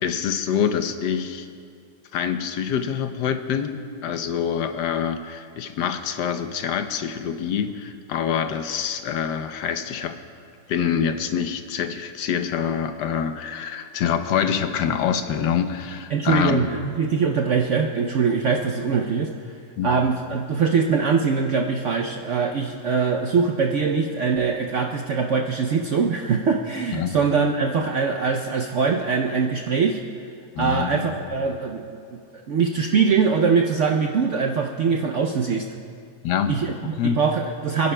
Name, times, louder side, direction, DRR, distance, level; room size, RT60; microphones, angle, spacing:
voice 1, 0.0-1.5 2.1-10.2 10.7-16.7 19.8-19.9 26.9-27.2 30.5-31.2 36.2-36.5 37.0-37.2, left 8 dB, 75° left, 8 dB, 1.3 m, -25 dB
voice 2, 16.1-19.3 19.8-30.0 30.6-31.8 32.3-35.7 36.5-37.9, right 5 dB, 70° right, 2 dB, 0.7 m, -22 dB
28.5 x 10.5 x 2.2 m, 2.3 s
omnidirectional pair, 1.9 m